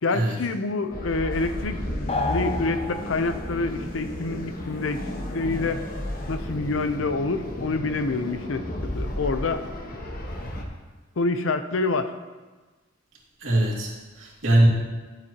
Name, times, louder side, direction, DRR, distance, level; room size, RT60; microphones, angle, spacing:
voice 1, 0.0-5.8 6.3-9.6 11.2-12.1, left 3 dB, 85° left, 10 dB, 0.6 m, -27 dB
sound 1, 0.9-10.6, equal, 50° left, 1.2 m, -33 dB
sound 2, 2.1-3.6, left 3 dB, 30° left, 0.5 m, -29 dB
voice 2, 13.4-14.7, right 1 dB, 90° right, -4 dB, 2.4 m, -22 dB
12.0 x 8.0 x 2.9 m, 1.3 s
head